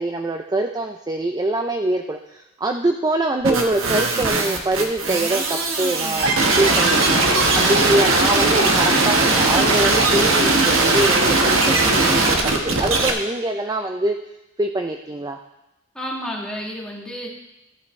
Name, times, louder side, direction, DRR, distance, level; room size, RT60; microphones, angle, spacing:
voice 1, 0.0-6.3 6.6-7.2 7.5-12.4 12.6-14.2 14.6-15.4, right 1 dB, 20° right, 4 dB, 0.4 m, -24 dB
sound 1, 3.4-13.1, right 3 dB, 70° right, 1.3 m, -18 dB
voice 2, 15.9-17.3, equal, 5° left, -3 dB, 1.8 m, -30 dB
14.5 x 8.6 x 3.2 m, 0.95 s
head